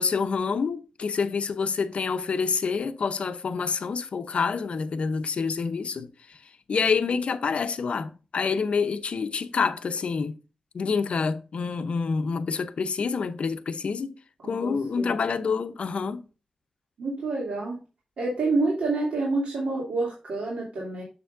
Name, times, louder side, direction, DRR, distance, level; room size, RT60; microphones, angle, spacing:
voice 1, 0.0-6.4 6.7-10.4 10.7-14.1 14.4-16.3, left 5 dB, 70° left, 0.7 m, -27 dB
voice 2, 14.4-15.2 17.0-17.8 18.2-21.0, right 3 dB, 90° right, 2.6 m, -28 dB
6.9 x 6.7 x 2.5 m
wide cardioid pair, 105°, 2 cm